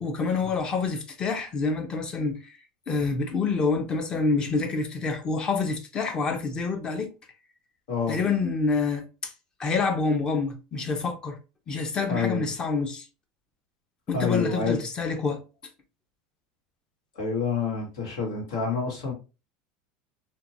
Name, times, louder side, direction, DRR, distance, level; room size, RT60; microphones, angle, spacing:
voice 1, 0.0-2.6 2.9-7.1 8.1-9.3 9.6-11.4 11.7-13.1 14.1-15.4, left 4 dB, 30° left, 0.6 m, -27 dB
voice 2, 7.9-8.2 12.1-12.5 14.1-14.8 17.1-19.1, left 5 dB, 80° left, 1.3 m, -28 dB
2.8 x 2.2 x 2.6 m
supercardioid pair, 115°, 3 cm